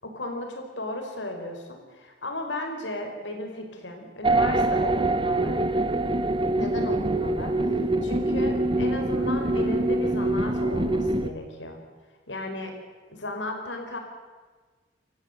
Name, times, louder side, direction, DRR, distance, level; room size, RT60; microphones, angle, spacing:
voice 1, 0.0-5.6 6.5-7.5 8.0-11.8 12.3-12.7 13.1-14.0, left 1 dB, 80° left, 4 dB, 5.0 m, -35 dB
sound 1, 4.2-11.3, right 2 dB, 30° right, 1.0 m, -24 dB
28.0 x 15.0 x 8.1 m, 1.4 s
head